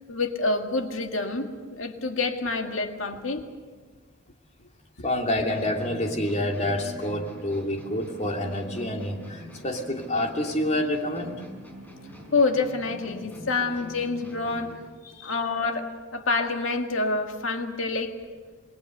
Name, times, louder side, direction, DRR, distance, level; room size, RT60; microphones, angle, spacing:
voice 1, 0.1-3.5 12.3-14.7 15.2-15.9 16.1-18.1, left 3 dB, 75° left, 4 dB, 2.0 m, -27 dB
voice 2, 5.0-11.3 15.0-15.4, left 1 dB, 35° left, 2 dB, 2.9 m, -28 dB
sound 1, 5.5-14.9, equal, 10° left, 5.1 m, -43 dB
27.5 x 20.5 x 6.7 m, 1.4 s
head